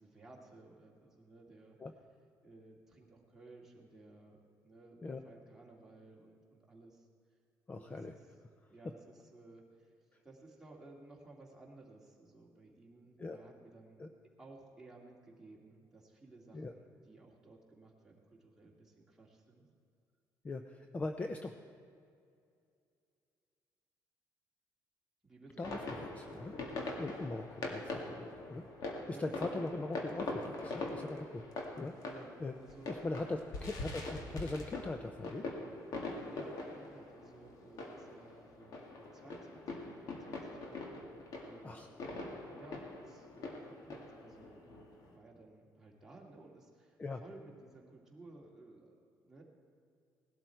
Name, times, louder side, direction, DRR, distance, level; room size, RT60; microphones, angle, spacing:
voice 1, 0.0-1.8 2.4-5.0 5.2-7.1 7.7-8.3 8.7-9.9 10.2-14.0 14.4-19.7 25.2-25.7 29.1-29.6 32.1-32.3 32.6-33.0 36.3-49.4, right 2 dB, 5° right, -3 dB, 2.4 m, -57 dB
voice 2, 7.7-8.1 13.2-13.4 14.0-14.1 16.5-16.7 20.4-21.5 25.6-26.6 27.0-28.6 28.9-31.4 31.8-31.9 32.4-32.5 32.9-35.5 41.6-41.9 47.0-47.2, left 2 dB, 20° left, 6 dB, 0.6 m, -41 dB
sound 1, 25.6-45.1, left 2 dB, 60° left, 2.0 m, -43 dB
19.0 x 12.0 x 4.5 m, 2.4 s
cardioid pair, 145°, 7 cm